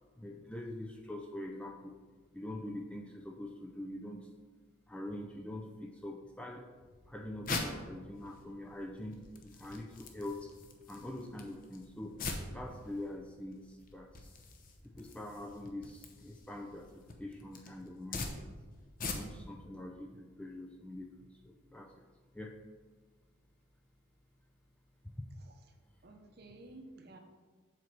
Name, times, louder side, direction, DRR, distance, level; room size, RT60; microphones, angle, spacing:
voice 1, 0.2-2.0 2.3-4.3 4.9-6.7 7.1-10.5 10.9-12.2 12.5-14.4 14.8-18.5 19.1-21.9 22.3-22.6 25.0-25.3, left 1 dB, 5° left, 2 dB, 0.4 m, -44 dB
sound 1, 6.8-19.6, left 3 dB, 40° left, 0.8 m, -44 dB
voice 2, 26.0-27.2, right 2 dB, 50° right, 4 dB, 0.9 m, -53 dB
7.5 x 4.5 x 5.8 m, 1.4 s
head